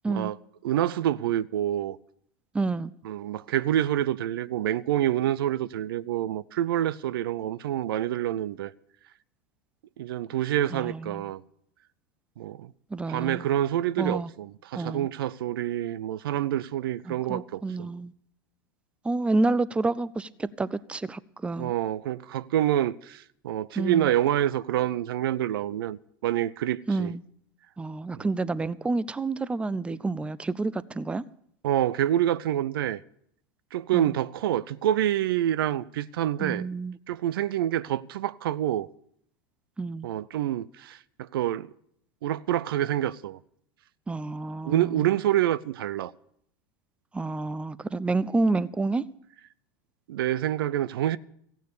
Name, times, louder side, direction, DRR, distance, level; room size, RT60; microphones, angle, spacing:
voice 1, 0.6-2.0 3.0-8.7 10.0-11.4 12.4-12.7 13.1-17.9 21.6-27.1 28.1-28.3 31.6-33.0 33.7-36.7 37.1-38.9 40.0-41.7 42.2-43.4 44.6-46.1 50.1-51.2, right 12 dB, 75° right, 0.5 m, -27 dB
voice 2, 2.5-2.9 10.7-11.2 12.9-13.4 14.0-14.3 14.8-15.1 17.1-18.1 19.0-21.7 23.8-24.1 26.9-27.2 27.8-31.2 33.9-34.1 36.4-37.0 39.8-40.1 44.1-45.1 47.1-49.0, right 3 dB, 10° right, 0.4 m, -29 dB
15.0 x 9.2 x 6.7 m
hypercardioid pair, 95°, 12 cm